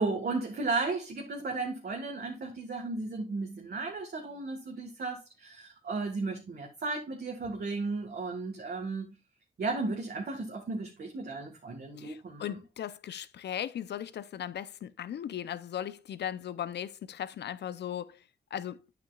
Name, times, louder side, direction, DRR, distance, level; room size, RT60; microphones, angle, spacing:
voice 1, 0.0-9.1 9.6-12.5, right 3 dB, 65° right, 1.7 m, -34 dB
voice 2, 12.0-18.2 18.5-18.8, left 10 dB, 80° left, 0.6 m, -37 dB
9.1 x 8.4 x 2.4 m
supercardioid pair, 45°, 18 cm